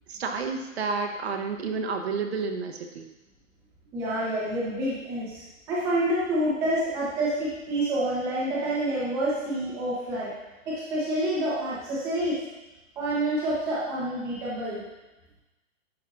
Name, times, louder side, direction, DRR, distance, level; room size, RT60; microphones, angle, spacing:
voice 1, 0.1-3.0, right 4 dB, 50° right, 5 dB, 0.9 m, -30 dB
voice 2, 3.9-5.4 5.7-10.3 10.7-12.4 13.0-14.8, right 1 dB, 5° right, -8 dB, 0.8 m, -28 dB
10.5 x 5.3 x 2.5 m, 1.0 s
hypercardioid pair, 170°, 40 cm